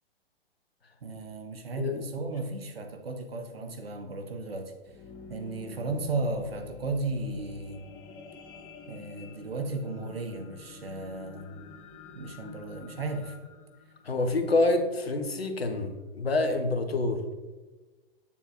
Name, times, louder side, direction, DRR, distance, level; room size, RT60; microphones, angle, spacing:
voice 1, 1.0-4.7 5.3-7.9 8.9-11.6 12.1-13.4, right 2 dB, 75° right, 6 dB, 1.1 m, -35 dB
sound 1, 4.7-15.1 15.7-15.8, left 5 dB, 20° left, 0.5 m, -49 dB
voice 2, 14.0-17.3, left 2 dB, 85° left, 7 dB, 1.0 m, -27 dB
8.3 x 7.1 x 2.5 m, 1.2 s
figure-of-eight pair, 115°, 30 cm